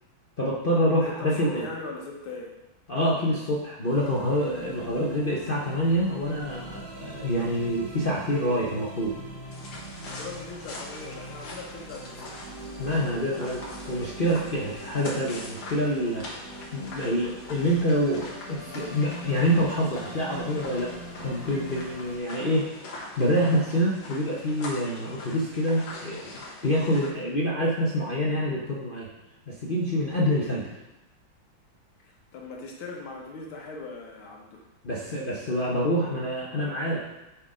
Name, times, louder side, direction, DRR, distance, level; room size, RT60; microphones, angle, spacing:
voice 1, 0.4-1.7 2.9-9.1 12.8-13.6 13.9-16.3 16.7-20.9 21.2-22.7 23.2-29.1 29.5-30.7 34.8-37.0, equal, 45° left, -5 dB, 0.7 m, -26 dB
voice 2, 1.1-2.6 10.0-12.4 32.0-34.7, left 3 dB, 85° left, 0 dB, 1.9 m, -40 dB
sound 1, 3.8-22.2, right 1 dB, 65° right, 2.6 m, -42 dB
sound 2, 9.5-27.1, left 2 dB, 65° left, 2.0 m, -43 dB
7.4 x 4.2 x 4.9 m, 0.99 s
omnidirectional pair, 2.2 m